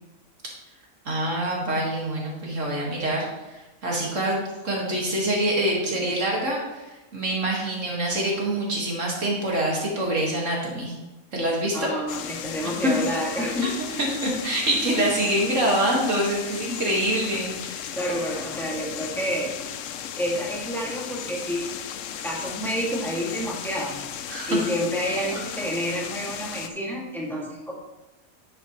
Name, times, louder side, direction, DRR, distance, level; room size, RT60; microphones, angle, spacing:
voice 1, 1.1-4.4 4.6-10.9 11.3-11.9 12.8-12.9 13.6-13.7 14.0-17.9 24.3-24.6, right 1 dB, 60° right, -2 dB, 2.3 m, -25 dB
voice 2, 11.4-13.7 18.0-19.5 20.2-21.7 22.2-24.0 24.5-27.7, equal, ahead, -4 dB, 2.1 m, -29 dB
sound 1, 12.1-26.7, left 9 dB, 70° left, 0.9 m, -35 dB
9.8 x 7.9 x 3.1 m, 1.1 s
omnidirectional pair, 1.5 m